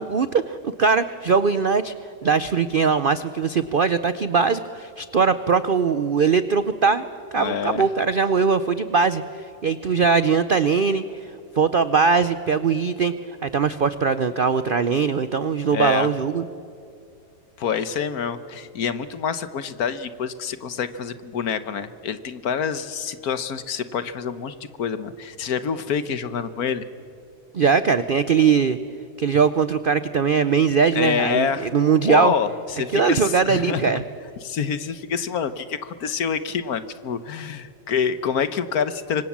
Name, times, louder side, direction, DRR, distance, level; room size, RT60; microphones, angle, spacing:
voice 1, 0.0-1.9 2.2-7.0 7.3-9.2 9.6-11.0 11.6-13.1 13.4-16.5 27.5-28.8 29.2-32.3 32.9-34.0, right 5 dB, 75° right, 12 dB, 0.5 m, -20 dB
voice 2, 7.4-7.9 15.7-16.1 17.6-26.9 30.9-31.7 32.1-34.0 34.4-39.3, left 7 dB, 60° left, 12 dB, 1.4 m, -26 dB
27.0 x 24.5 x 7.4 m, 2.6 s
omnidirectional pair, 1.9 m